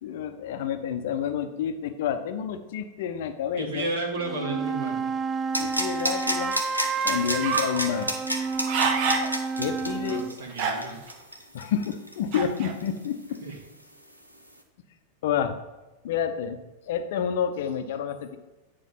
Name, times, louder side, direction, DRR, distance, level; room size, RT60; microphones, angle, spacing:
voice 1, 0.0-3.9 5.6-6.6 7.0-8.2 9.6-10.2 11.5-13.4 15.2-15.5 16.0-16.6 16.9-18.4, left 8 dB, 55° left, 9 dB, 0.7 m, -29 dB
voice 2, 3.6-5.0 9.9-11.0 13.4-13.6, right 2 dB, 60° right, 0 dB, 1.7 m, -32 dB
sound 1, 4.1-10.3, right 5 dB, 20° right, 0.3 m, -30 dB
sound 2, 5.5-13.1 13.3-13.4, equal, 90° right, 1.0 m, -30 dB
sound 3, 7.4-7.8 8.4-9.3 9.8-9.9 10.5-11.1 12.3-12.8, right 5 dB, 45° right, 0.9 m, -27 dB
9.0 x 3.3 x 5.5 m, 1.1 s
figure-of-eight pair, 90°, 0 cm